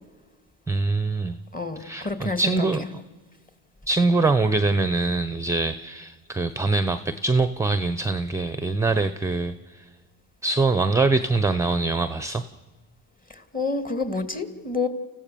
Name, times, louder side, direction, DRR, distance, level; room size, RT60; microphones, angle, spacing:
voice 1, 0.7-1.4 1.8-3.0 3.9-9.9 10.4-12.5, right 3 dB, 5° right, 11 dB, 0.8 m, -23 dB
voice 2, 1.5-2.6 13.3-14.9, left 3 dB, 20° left, 8 dB, 2.3 m, -28 dB
29.0 x 15.0 x 7.0 m, 1.3 s
supercardioid pair, 95°, 42 cm